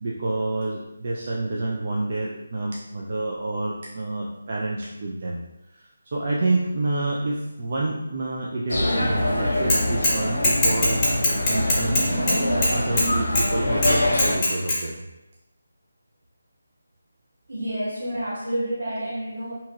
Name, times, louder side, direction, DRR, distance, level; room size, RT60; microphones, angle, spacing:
voice 1, 0.0-5.4 5.7-5.8 6.1-11.0 11.5-12.1 12.5-15.0, right 2 dB, 45° right, -3 dB, 0.3 m, -28 dB
sound 1, 8.7-14.4, left 1 dB, 70° left, 0.7 m, -24 dB
Bicycle / Mechanisms, 9.7-10.2 10.4-13.1 13.4-13.5 13.8-14.8, left 1 dB, 20° left, 0.7 m, -21 dB
voice 2, 17.5-19.5, right 1 dB, 70° right, -7 dB, 1.4 m, -29 dB
2.7 x 2.7 x 2.4 m, 0.96 s
figure-of-eight pair, 155°, 0 cm